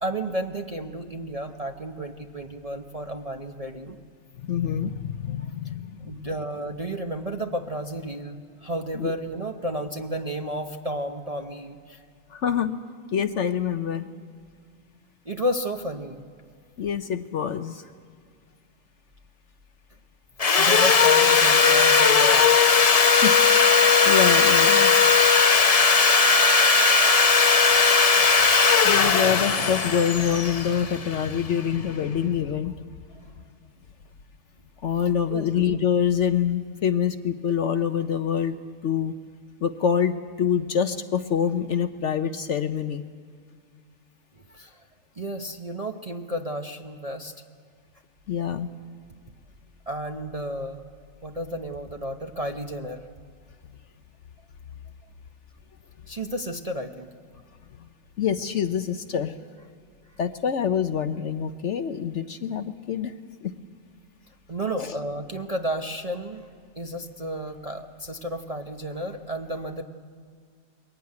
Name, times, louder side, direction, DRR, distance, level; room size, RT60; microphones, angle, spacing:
voice 1, 0.0-4.0 5.4-5.5 6.0-12.0 15.3-16.2 20.4-22.5 28.7-29.2 35.3-35.5 44.5-44.8 45.2-47.3 49.9-50.8 51.2-53.0 56.1-57.1 64.5-66.5 66.8-69.8, right 1 dB, 30° right, 3 dB, 0.7 m, -32 dB
voice 2, 4.4-6.3 8.9-9.1 12.3-12.8 13.1-14.0 16.8-17.8 23.1-23.4 23.7-24.9 28.8-32.9 34.8-38.6 38.8-39.1 39.6-43.0 48.3-48.7 58.2-59.4 60.2-63.1 63.4-63.5 64.8-65.0, left 8 dB, 60° left, 10 dB, 0.9 m, -26 dB
Sawing, 20.4-31.5, left 5 dB, 40° left, 0.5 m, -18 dB
22.0 x 15.5 x 9.5 m, 2.1 s
omnidirectional pair, 1.6 m